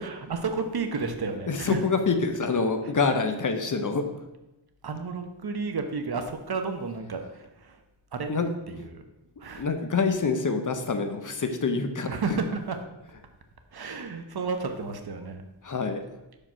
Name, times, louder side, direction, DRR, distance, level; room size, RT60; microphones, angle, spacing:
voice 1, 0.0-1.8 4.8-7.8 8.1-8.3 8.7-9.0 9.4-9.7 12.1-12.8 13.7-15.4, right 4 dB, 55° right, 6 dB, 0.8 m, -32 dB
voice 2, 1.5-4.3 8.3-8.5 8.8-8.9 9.5-12.4 15.6-16.0, left 4 dB, 40° left, 7 dB, 0.7 m, -26 dB
5.9 x 5.0 x 5.5 m, 0.97 s
wide cardioid pair, 135°, 46 cm